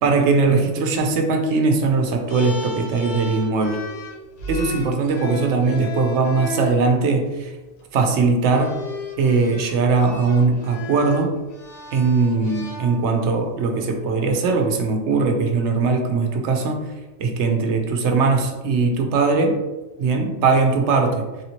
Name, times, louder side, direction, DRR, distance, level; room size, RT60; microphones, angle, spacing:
voice 1, 0.0-3.8 4.5-7.5 7.9-8.8 9.2-11.3 11.9-16.9 17.2-19.6 20.0-21.3, right 4 dB, 75° right, 4 dB, 0.9 m, -20 dB
sound 1, 2.3-6.8 7.8-8.0 8.5-13.3, left 1 dB, 90° left, 1.0 m, -34 dB
3.3 x 2.9 x 2.8 m, 1.1 s
omnidirectional pair, 1.2 m